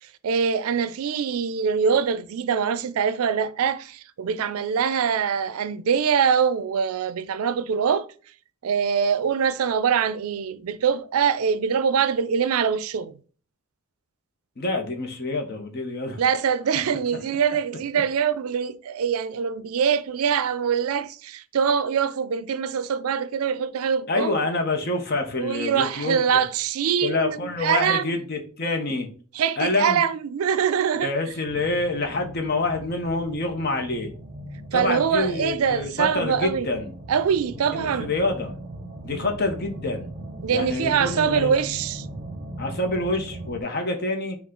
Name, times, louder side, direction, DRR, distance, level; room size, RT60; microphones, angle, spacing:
voice 1, 0.0-8.1 8.6-13.2 16.0-24.3 25.4-28.2 29.3-31.1 34.7-36.7 37.1-38.1 40.4-42.1, right 7 dB, 80° right, 0.4 m, -24 dB
voice 2, 14.6-16.2 24.1-26.4 27.0-29.1 29.6-30.0 31.0-34.1 34.7-36.9 37.7-38.6 39.0-40.1 40.5-41.6 42.6-44.4, left 2 dB, 45° left, 0.9 m, -27 dB
sound 1, 31.5-43.6, right 1 dB, 35° right, 0.8 m, -39 dB
5.4 x 2.4 x 3.7 m
head